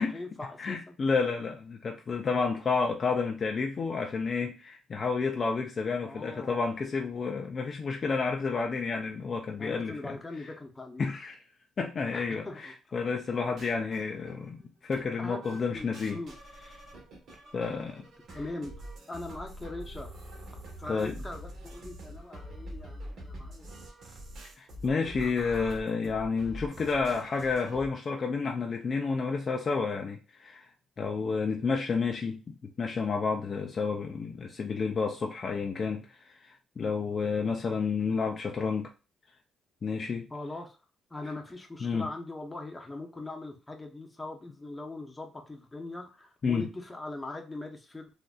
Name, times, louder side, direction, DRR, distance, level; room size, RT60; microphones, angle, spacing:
voice 1, 0.0-0.9 6.0-6.6 9.6-11.1 12.1-12.7 15.2-15.4 15.7-16.3 18.3-18.7 19.1-20.1 20.8-23.7 40.3-40.8 41.1-48.2, left 2 dB, 15° left, 3 dB, 0.8 m, -41 dB
voice 2, 0.6-10.5 11.0-11.4 11.8-16.2 17.5-18.4 20.9-21.2 24.6-30.7 31.0-38.9 39.8-40.3 41.8-42.1 46.4-46.7, left 4 dB, 45° left, 2 dB, 0.5 m, -30 dB
sound 1, 13.3-14.6 14.9-15.0 15.4-27.9, equal, 60° right, 1.2 m, -45 dB
3.8 x 2.6 x 2.3 m, 0.31 s
cardioid pair, 90°, 0 cm